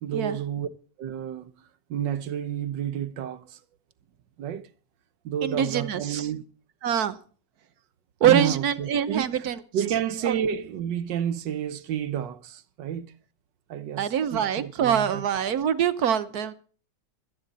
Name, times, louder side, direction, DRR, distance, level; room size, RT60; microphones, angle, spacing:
voice 1, 0.0-0.7 1.0-1.5 1.9-3.6 4.4-4.7 5.2-6.4 8.2-9.4 9.7-13.1 13.7-15.3, right 9 dB, 80° right, 1.5 m, -30 dB
voice 2, 5.4-6.3 6.8-7.2 8.2-9.6 10.2-10.4 14.0-16.5, right 9 dB, 60° right, 1.4 m, -24 dB
17.5 x 13.0 x 4.1 m
omnidirectional pair, 1.9 m